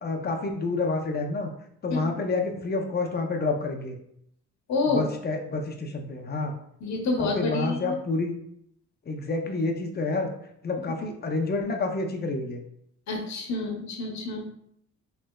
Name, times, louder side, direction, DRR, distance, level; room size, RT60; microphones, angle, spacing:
voice 1, 0.0-1.5 1.8-4.0 4.9-6.5 7.2-8.3 9.1-10.3 10.6-12.6, left 3 dB, 35° left, 3 dB, 0.5 m, -28 dB
voice 2, 4.7-5.0 6.8-8.0 13.1-14.5, left 3 dB, 65° left, 1 dB, 0.9 m, -28 dB
3.2 x 3.0 x 2.2 m, 0.71 s
cardioid pair, 90°, 30 cm